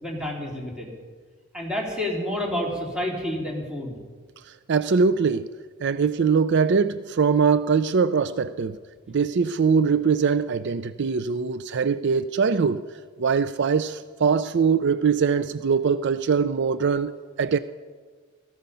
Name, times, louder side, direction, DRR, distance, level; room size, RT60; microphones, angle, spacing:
voice 1, 0.0-0.9 1.5-4.0 9.1-9.2, left 1 dB, 5° right, 3.4 m, -29 dB
voice 2, 4.7-5.5 5.8-8.8 9.1-12.8 13.2-17.6, right 5 dB, 60° right, 0.5 m, -22 dB
16.5 x 15.0 x 5.6 m
head